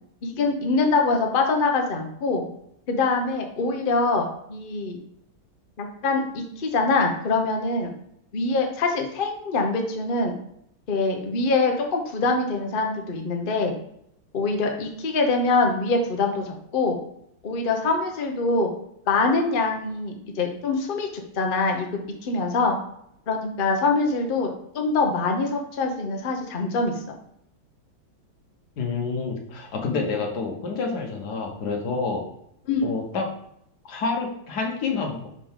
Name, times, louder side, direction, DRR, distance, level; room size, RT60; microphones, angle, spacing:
voice 1, 0.2-2.5 2.9-5.0 5.8-7.9 8.3-10.3 10.9-13.7 14.3-17.0 17.4-18.7 19.1-22.8 23.3-24.5 24.7-26.9 32.7-32.9, left 3 dB, 75° left, 3 dB, 0.4 m, -24 dB
voice 2, 28.8-32.3 32.8-33.3 33.8-35.3, left 4 dB, 55° left, 1 dB, 1.5 m, -28 dB
5.6 x 5.0 x 3.6 m, 0.74 s
omnidirectional pair, 2.3 m